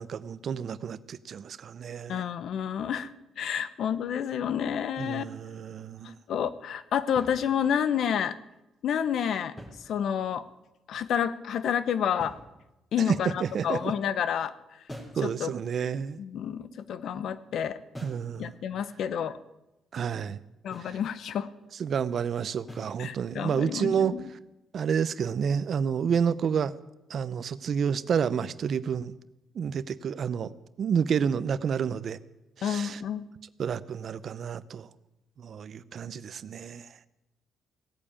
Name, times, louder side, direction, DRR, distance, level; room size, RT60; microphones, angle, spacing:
voice 1, 0.0-2.2 5.0-6.2 13.0-13.8 15.1-16.2 18.0-18.5 19.9-20.4 20.8-21.0 21.8-24.4 24.7-26.7 27.1-29.1 29.5-32.2 32.6-33.0 33.6-34.9 35.4-36.9, right 7 dB, 55° right, 16 dB, 0.7 m, -30 dB
voice 2, 2.1-3.1 3.4-5.2 6.3-8.4 8.8-9.5 9.9-10.4 10.9-12.3 12.9-14.5 15.2-15.5 16.2-17.8 18.4-19.4 20.6-21.5 23.0-24.3 32.6-33.3, left 8 dB, 70° left, 15 dB, 0.9 m, -29 dB
sound 1, 7.2-7.9 9.4-10.4 12.2-13.0 14.9-15.3 17.9-18.3 20.7-21.0 22.7-23.1, equal, 20° left, 3.9 m, -46 dB
16.5 x 8.7 x 8.7 m, 0.96 s
cardioid pair, 90°, 0 cm